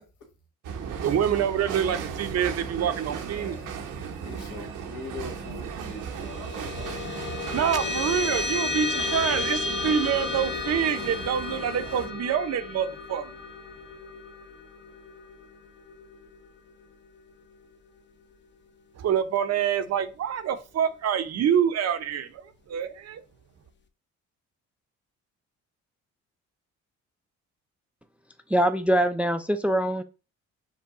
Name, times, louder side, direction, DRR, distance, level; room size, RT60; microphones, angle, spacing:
sound 1, 0.6-12.1, right 6 dB, 90° right, 0.9 m, -37 dB
voice 1, 0.9-3.6 7.5-13.3 19.0-22.4 22.7-23.2, right 8 dB, 55° right, 0.6 m, -26 dB
voice 2, 3.3-3.8 4.2-6.5 6.8-7.5 8.6-8.7, left 3 dB, 85° left, 1.6 m, -42 dB
sound 2, 5.9-16.7, left 3 dB, 40° left, 0.6 m, -33 dB
voice 3, 28.5-30.0, right 1 dB, 5° right, 0.3 m, -23 dB
5.4 x 2.2 x 3.8 m
cardioid pair, 90°, 30 cm